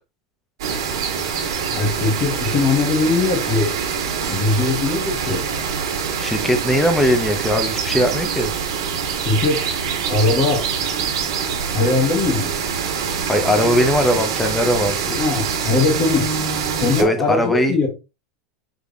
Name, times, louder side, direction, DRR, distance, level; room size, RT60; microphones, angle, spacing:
sound 1, 0.6-17.0, right 6 dB, 80° right, 1.5 m, -24 dB
voice 1, 1.7-3.7 4.3-5.4 9.2-9.6 10.1-10.6 11.7-12.5 15.1-16.3 16.8-17.9, left 3 dB, 30° left, 1.2 m, -20 dB
voice 2, 6.2-8.5 13.3-14.9 17.0-17.8, equal, 5° left, 0.6 m, -19 dB
5.1 x 3.3 x 2.6 m
supercardioid pair, 150°, 3 cm